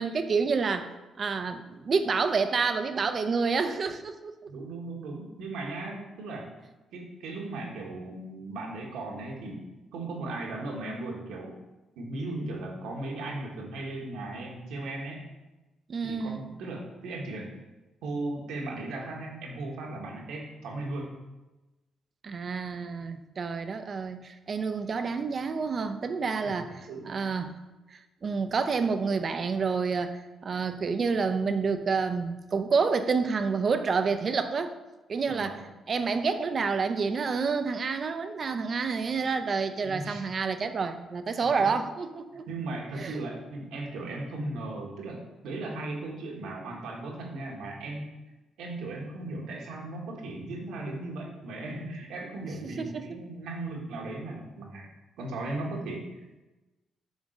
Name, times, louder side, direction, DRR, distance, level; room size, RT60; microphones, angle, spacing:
voice 1, 0.0-4.3 15.9-16.5 22.2-26.7 27.0-27.6 27.9-34.8 35.1-42.5 43.0-43.2 52.6-53.2, right 5 dB, 45° right, 9 dB, 0.6 m, -29 dB
voice 2, 4.5-6.5 6.9-9.6 9.9-11.5 11.9-15.2 16.0-17.5 18.0-21.2 26.4-26.6 26.8-27.2 35.3-35.5 39.9-40.2 41.4-41.7 42.5-48.1 48.6-54.9 55.2-56.0, right 2 dB, 85° right, -1 dB, 1.6 m, -37 dB
7.2 x 3.7 x 6.5 m, 1.1 s
cardioid pair, 90°, 0 cm